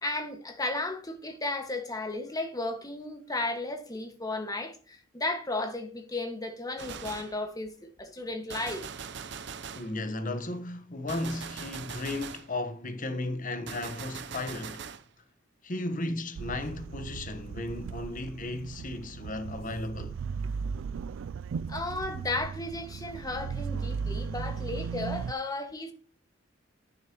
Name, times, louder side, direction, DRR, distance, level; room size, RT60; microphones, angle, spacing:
voice 1, 0.0-8.9 21.7-25.9, left 2 dB, 20° left, 1.7 m, -34 dB
Gunshot gunfire, 6.8-7.4 8.5-10.0 11.1-12.5 13.7-15.1, right 6 dB, 60° right, 0.7 m, -41 dB
voice 2, 9.7-14.9 15.6-20.2, left 2 dB, 45° left, 1.2 m, -35 dB
sound 1, 16.3-25.3, right 5 dB, 85° right, 0.3 m, -36 dB
10.5 x 9.8 x 3.0 m
head